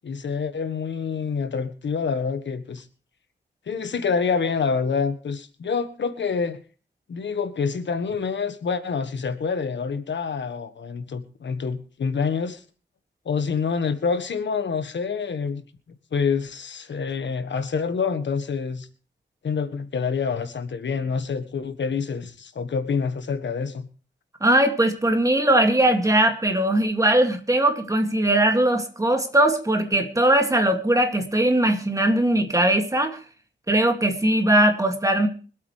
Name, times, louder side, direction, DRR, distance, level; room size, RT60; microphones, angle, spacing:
voice 1, 0.0-2.8 3.7-6.6 7.1-12.6 13.2-15.6 16.1-18.9 19.4-23.9, left 5 dB, 70° left, 9 dB, 1.5 m, -27 dB
voice 2, 24.4-33.2 33.7-35.3, right 1 dB, 15° right, 4 dB, 2.3 m, -20 dB
25.0 x 8.5 x 3.3 m, 0.39 s
wide cardioid pair, 100°, 19 cm